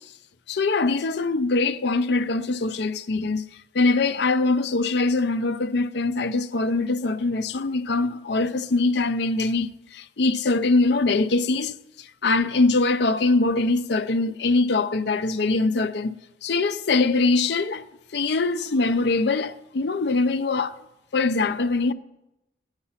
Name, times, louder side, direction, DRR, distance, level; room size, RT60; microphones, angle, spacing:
voice 1, 0.5-3.4 3.7-16.1 16.4-17.9 18.1-20.8 21.1-21.9, left 3 dB, 60° left, 0.5 m, -23 dB
13.5 x 9.7 x 5.7 m
head